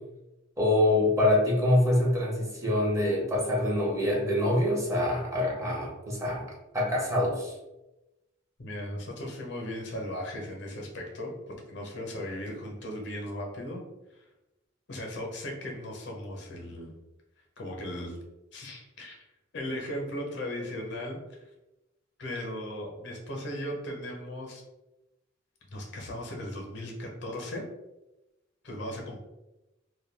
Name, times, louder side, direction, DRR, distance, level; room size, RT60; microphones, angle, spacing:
voice 1, 0.6-6.4 6.7-7.6, left 1 dB, 15° right, -4 dB, 0.6 m, -25 dB
voice 2, 8.6-13.8 14.1-14.3 14.9-16.9 17.6-18.2 18.5-19.2 19.5-21.4 22.2-24.6 25.7-27.7 28.6-29.2, left 1 dB, 60° left, 0 dB, 0.7 m, -37 dB
2.2 x 2.2 x 3.2 m, 0.99 s
head